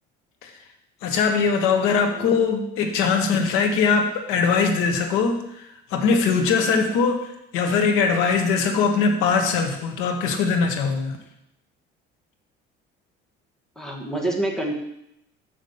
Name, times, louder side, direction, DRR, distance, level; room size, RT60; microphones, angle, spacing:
voice 1, 1.0-11.2, left 5 dB, 90° left, 5 dB, 1.5 m, -21 dB
voice 2, 13.8-14.7, right 1 dB, ahead, 0 dB, 1.2 m, -27 dB
7.1 x 6.2 x 7.1 m, 0.79 s
cardioid pair, 170°, 21 cm